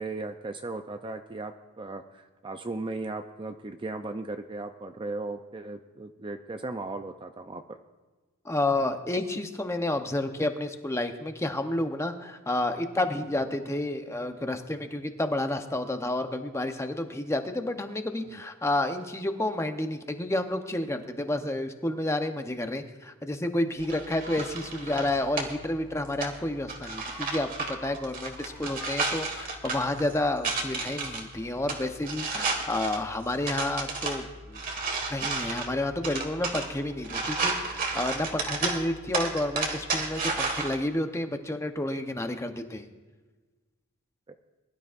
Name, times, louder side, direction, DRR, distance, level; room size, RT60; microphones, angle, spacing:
voice 1, 0.0-7.6 18.3-18.4, right 2 dB, 20° right, 7 dB, 0.4 m, -37 dB
voice 2, 8.4-34.6 35.1-42.9, left 1 dB, 10° left, 6 dB, 0.8 m, -30 dB
sound 1, 23.8-40.8, right 3 dB, 40° right, 1.7 m, -33 dB
sound 2, 23.9-24.5 26.8-29.5 29.8-30.0 30.2-31.2, left 3 dB, 55° left, 1.5 m, -48 dB
21.5 x 12.0 x 2.5 m, 1.3 s
head